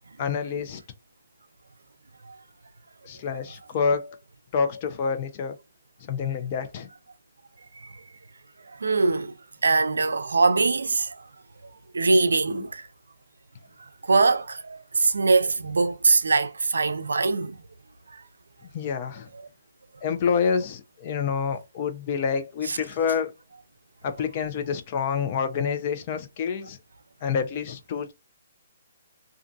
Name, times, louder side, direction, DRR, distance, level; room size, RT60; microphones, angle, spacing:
voice 1, 0.2-0.8 3.0-4.2 4.5-5.6 6.1-6.9 12.5-12.7 18.7-19.3 20.0-23.3 24.0-26.8 27.2-28.1, left 6 dB, 40° left, 0.6 m, -27 dB
voice 2, 8.8-9.3 9.6-11.1 11.9-12.8 14.1-17.6 22.7-22.8, right 3 dB, 85° right, 0.4 m, -22 dB
2.5 x 2.5 x 2.4 m
hypercardioid pair, 145°, 0 cm